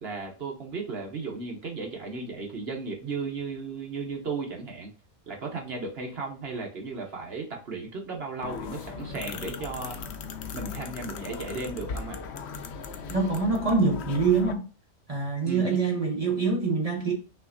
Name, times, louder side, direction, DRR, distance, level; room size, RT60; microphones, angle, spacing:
voice 1, 0.0-4.9 5.3-10.0 10.5-12.2 15.5-15.8, right 4 dB, 55° right, 1.1 m, -35 dB
sound 1, 8.4-14.5, left 5 dB, 65° left, 0.8 m, -38 dB
voice 2, 13.1-14.7 15.1-17.1, right 4 dB, 30° right, 1.1 m, -25 dB
5.7 x 3.1 x 2.6 m
omnidirectional pair, 1.4 m